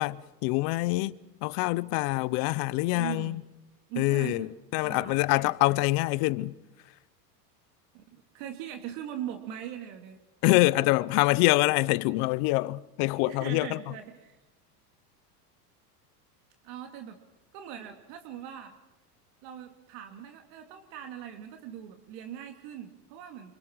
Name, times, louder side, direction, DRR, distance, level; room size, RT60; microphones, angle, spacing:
voice 1, 0.0-3.4 4.0-6.5 10.4-13.8, left 21 dB, 50° left, 1.0 m, -25 dB
voice 2, 2.9-3.4 3.9-4.5 4.8-5.8 7.9-10.2 11.6-11.7 13.2-14.4 16.6-17.2 17.5-18.7 19.4-23.5, right 10 dB, 55° right, 3.0 m, -41 dB
28.0 x 25.5 x 4.9 m
supercardioid pair, 130°, 47 cm